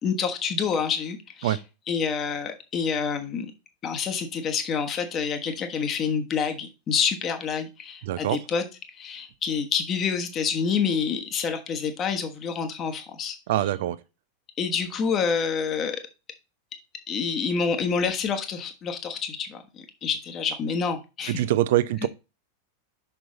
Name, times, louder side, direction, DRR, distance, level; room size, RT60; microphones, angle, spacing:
voice 1, 0.0-1.6 1.9-3.5 3.8-8.6 8.9-13.4 14.6-16.0 17.1-21.4, left 6 dB, 30° left, 1.3 m, -27 dB
voice 2, 8.0-8.4 13.5-14.0 21.3-22.1, right 14 dB, 55° right, 0.5 m, -24 dB
6.1 x 5.8 x 3.9 m
figure-of-eight pair, 90°, 0 cm